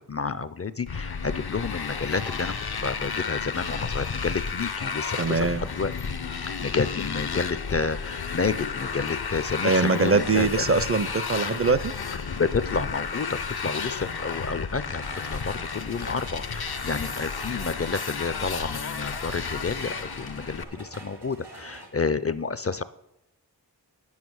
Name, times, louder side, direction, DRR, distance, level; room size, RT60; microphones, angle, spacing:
voice 1, 0.1-2.5 2.8-5.9 6.3-10.5 12.3-15.0 15.3-22.8, left 4 dB, 35° left, 14 dB, 0.4 m, -30 dB
Motorcycle, 0.9-20.6, left 5 dB, 70° left, 0.7 m, -32 dB
voice 2, 5.2-5.7 9.6-11.9, right 4 dB, 35° right, 14 dB, 0.5 m, -23 dB
sound 1, 14.9-21.9, right 2 dB, 85° right, 2.6 m, -46 dB
9.3 x 7.3 x 6.2 m, 0.86 s
wide cardioid pair, 45°, 40 cm